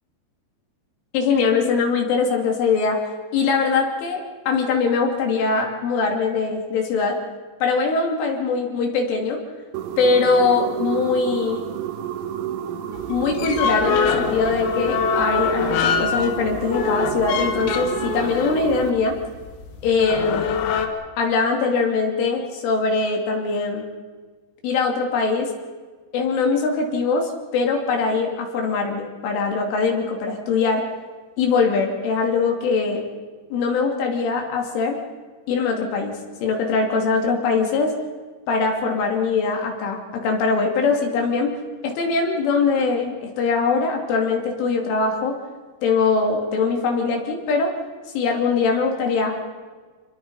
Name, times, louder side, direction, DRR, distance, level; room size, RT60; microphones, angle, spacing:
voice 1, 1.1-3.0 3.3-7.2 7.6-9.4 10.0-11.6 13.1-19.2 19.8-20.6 21.2-23.8 24.6-25.5 26.1-30.9 31.4-33.0 33.5-35.0 35.5-38.0 38.5-41.6 41.8-45.4 45.8-47.7 48.1-49.4, left 4 dB, 70° left, 2 dB, 5.0 m, -22 dB
sound 1, 9.7-18.9, right 10 dB, 80° right, 3.6 m, -30 dB
sound 2, 12.9-20.9, left 6 dB, 90° left, 4.5 m, -24 dB
27.0 x 21.5 x 5.6 m, 1.5 s
omnidirectional pair, 6.0 m